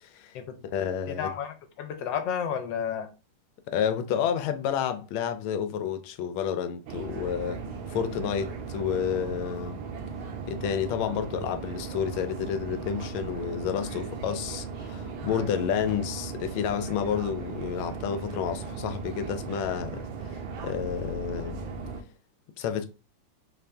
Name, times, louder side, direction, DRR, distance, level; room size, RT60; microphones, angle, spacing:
voice 1, 0.0-0.4 0.6-1.3 3.7-7.6 7.9-9.8 10.5-21.6 22.6-22.9, left 8 dB, 85° left, 1.4 m, -30 dB
voice 2, 1.1-3.1 8.2-8.3 9.4-9.5, left 8 dB, 70° left, 1.3 m, -32 dB
sound 1, 6.9-22.0, right 5 dB, 85° right, 1.4 m, -37 dB
4.1 x 2.5 x 3.3 m
omnidirectional pair, 2.2 m